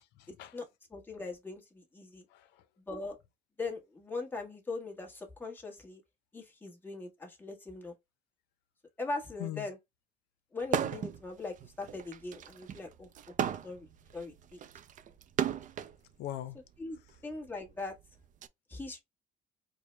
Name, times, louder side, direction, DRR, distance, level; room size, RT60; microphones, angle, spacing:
voice 1, 0.2-0.6 2.3-2.7 9.4-9.7 16.2-16.6 17.1-17.2, left 13 dB, 85° left, 0.6 m, -41 dB
voice 2, 0.9-2.2 2.9-3.2 3.6-6.0 6.3-7.9 9.0-9.7 10.5-13.3 13.6-13.9 14.1-14.6 16.8-17.9 18.7-19.0, left 3 dB, 10° left, 1.3 m, -40 dB
sound 1, 10.6-11.2 11.6-15.9 16.8-18.5, right 9 dB, 50° right, 0.4 m, -35 dB
4.5 x 2.2 x 3.1 m
cardioid pair, 110°, 17 cm